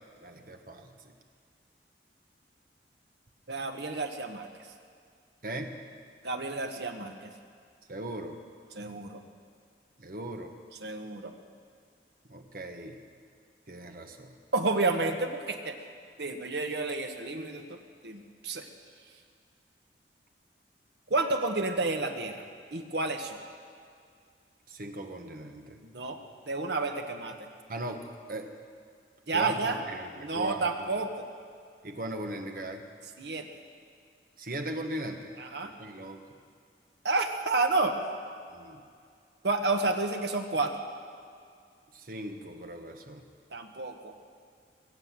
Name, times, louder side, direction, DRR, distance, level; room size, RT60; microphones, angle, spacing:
voice 1, 0.2-1.1 5.4-5.7 7.9-8.4 10.0-10.5 12.3-13.0 13.7-14.4 24.7-25.8 27.7-28.5 29.3-30.9 31.8-32.8 34.4-35.3 35.6-36.2 38.5-38.8 41.9-43.2, right 1 dB, 50° right, 4 dB, 1.3 m, -39 dB
voice 2, 3.5-4.5 6.2-7.3 8.7-9.2 10.8-11.3 14.5-15.8 16.2-17.6 18.0-18.7 21.1-22.4 22.7-23.4 25.9-26.2 26.5-27.4 29.3-29.8 30.2-31.1 33.2-33.5 35.4-35.7 37.0-38.0 39.4-40.7 43.5-44.1, right 3 dB, 70° right, 5 dB, 1.3 m, -30 dB
22.0 x 7.7 x 7.6 m, 2.2 s
head